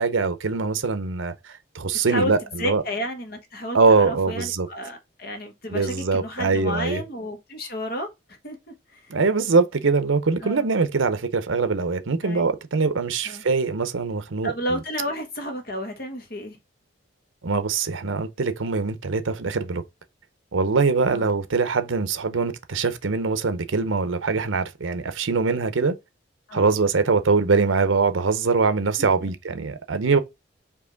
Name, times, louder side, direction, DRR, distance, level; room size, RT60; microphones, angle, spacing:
voice 1, 0.0-2.8 3.7-4.7 5.7-7.0 9.1-14.5 17.4-19.8 20.5-25.9 26.5-30.2, right 4 dB, 80° right, 0.7 m, -23 dB
voice 2, 2.6-9.1 10.4-10.7 12.2-12.4 13.2-13.4 14.4-16.6 21.1-21.3 26.5-26.7 29.0-29.3, equal, 50° left, 1.3 m, -32 dB
4.7 x 2.8 x 3.9 m
head